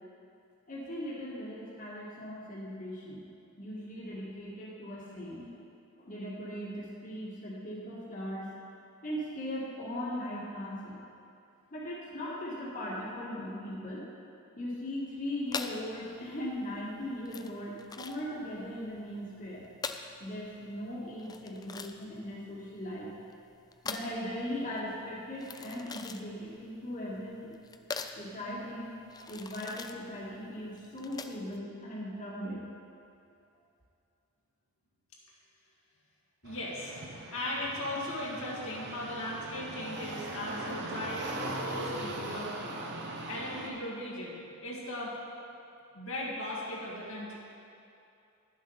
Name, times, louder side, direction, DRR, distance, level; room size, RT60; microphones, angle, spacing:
voice 1, 0.7-3.2 3.6-5.4 6.0-8.5 9.0-11.0 11.7-14.2 14.6-19.6 20.2-23.1 23.8-27.6 28.2-28.9 29.3-32.6, equal, 40° left, -6 dB, 1.8 m, -39 dB
sound 1, 15.5-31.6, left 5 dB, 20° left, 0.3 m, -43 dB
voice 2, 36.4-42.5 43.3-45.2 45.9-47.4, left 1 dB, 65° left, -4 dB, 2.0 m, -38 dB
sound 2, 36.4-43.7, right 2 dB, 55° right, 1.0 m, -39 dB
10.5 x 7.4 x 5.6 m, 2.6 s
head